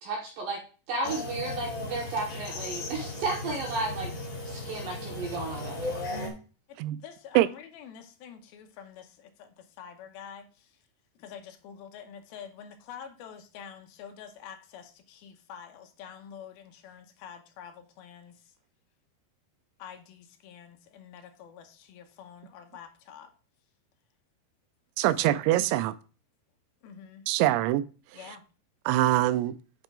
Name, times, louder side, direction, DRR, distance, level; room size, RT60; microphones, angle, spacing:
voice 1, 0.0-0.6 0.9-4.1 4.5-6.0, right 3 dB, 65° right, 2.4 m, -33 dB
sound 1, 1.0-6.3, left 2 dB, 45° left, 3.5 m, -36 dB
voice 2, 6.7-10.8 11.2-18.5 19.8-23.3 25.2-25.3 26.8-27.3 28.1-28.4, left 8 dB, 75° left, 2.4 m, -47 dB
voice 3, 25.0-25.9 27.3-27.9 28.9-29.6, right 15 dB, 85° right, 2.9 m, -23 dB
9.1 x 5.1 x 3.6 m
omnidirectional pair, 5.2 m